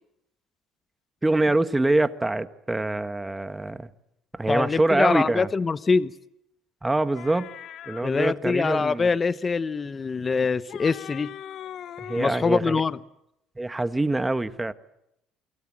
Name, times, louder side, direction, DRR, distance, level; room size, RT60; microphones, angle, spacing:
voice 1, 1.2-3.9 4.3-5.5 6.8-7.5 7.9-9.1 12.0-12.8 13.6-14.7, right 2 dB, 10° right, 1.4 m, -24 dB
voice 2, 4.5-6.1 8.0-11.3 12.2-13.0, left 4 dB, 25° left, 0.9 m, -24 dB
sound 1, 7.1-8.1 10.4-12.5, left 10 dB, 55° left, 0.9 m, -40 dB
29.0 x 22.5 x 7.5 m
cardioid pair, 115°, 0 cm